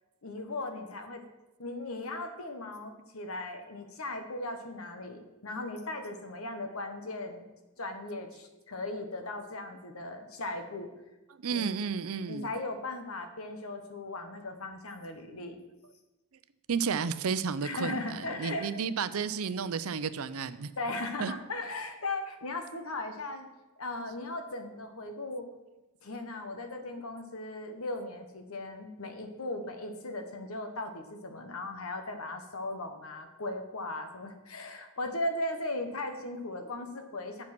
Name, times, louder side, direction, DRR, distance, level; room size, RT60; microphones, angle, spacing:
voice 1, 0.2-1.3 1.6-7.5 7.8-10.9 11.5-11.6 12.3-15.6 17.6-18.8 20.8-23.5 23.8-25.5 26.0-37.4, left 2 dB, 80° left, 6 dB, 1.3 m, -37 dB
voice 2, 11.4-12.5 16.7-20.7 21.2-21.3, right 6 dB, 85° right, 14 dB, 0.6 m, -32 dB
8.7 x 7.4 x 6.0 m, 1.0 s
head